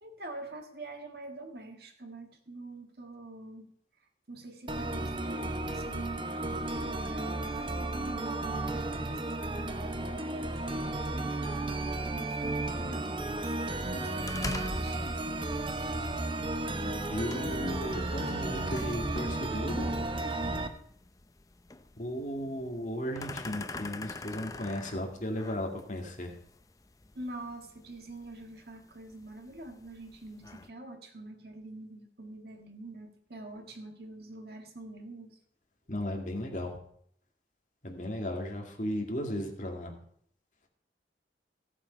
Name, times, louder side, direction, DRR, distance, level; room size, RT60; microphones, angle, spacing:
voice 1, 0.0-3.7 4.3-10.6 11.1-13.2 13.7-15.4 27.2-35.4, right 2 dB, 60° right, 4 dB, 1.7 m, -45 dB
sound 1, 4.7-20.7, right 2 dB, 30° right, 0.9 m, -33 dB
sound 2, 14.2-30.7, left 3 dB, 20° left, 0.5 m, -46 dB
voice 2, 17.1-19.9 22.0-26.4 35.9-36.8 37.8-40.0, equal, 45° left, 1 dB, 2.1 m, -35 dB
14.5 x 7.5 x 5.4 m, 0.66 s
head